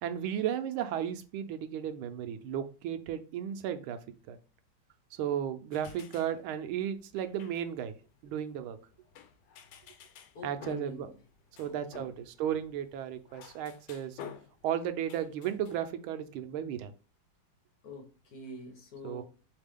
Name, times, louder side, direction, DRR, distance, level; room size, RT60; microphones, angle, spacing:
voice 1, 0.0-4.0 4.3-4.4 5.2-7.9 8.2-8.8 10.4-11.1 11.6-14.2 14.6-16.9 19.0-19.2, right 9 dB, 85° right, 9 dB, 1.5 m, -34 dB
sound 1, 5.7-15.8, left 7 dB, 70° left, 1.2 m, -52 dB
voice 2, 10.3-11.2 11.6-12.2 17.8-19.2, left 1 dB, 55° left, 1 dB, 1.4 m, -46 dB
4.0 x 3.6 x 3.5 m, 0.35 s
omnidirectional pair, 2.2 m